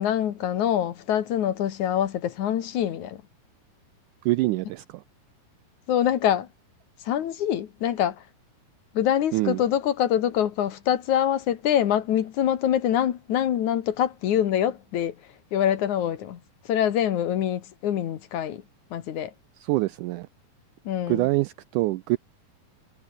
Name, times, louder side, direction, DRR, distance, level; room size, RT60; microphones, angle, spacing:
voice 1, 0.0-3.2 5.9-6.5 7.0-8.2 8.9-15.2 15.5-16.4 16.6-18.6 18.9-19.3 20.9-21.3, left 10 dB, 60° left, 2.6 m, -25 dB
voice 2, 4.2-5.0 9.3-9.6 19.6-20.3 21.1-22.2, right 19 dB, 85° right, 1.8 m, -25 dB
omnidirectional pair, 4.1 m